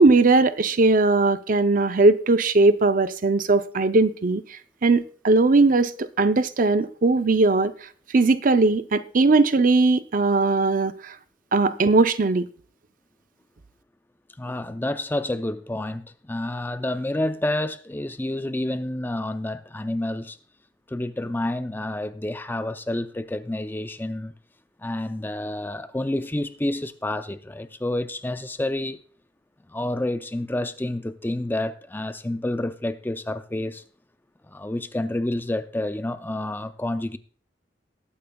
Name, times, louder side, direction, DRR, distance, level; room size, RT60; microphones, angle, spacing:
voice 1, 0.0-7.7 8.1-11.1 11.5-12.5, right 3 dB, 50° right, 0.5 m, -19 dB
voice 2, 14.4-20.4 20.9-24.3 24.8-29.0 29.7-33.8 34.5-37.2, left 1 dB, 10° left, 0.5 m, -29 dB
20.0 x 8.7 x 2.3 m
head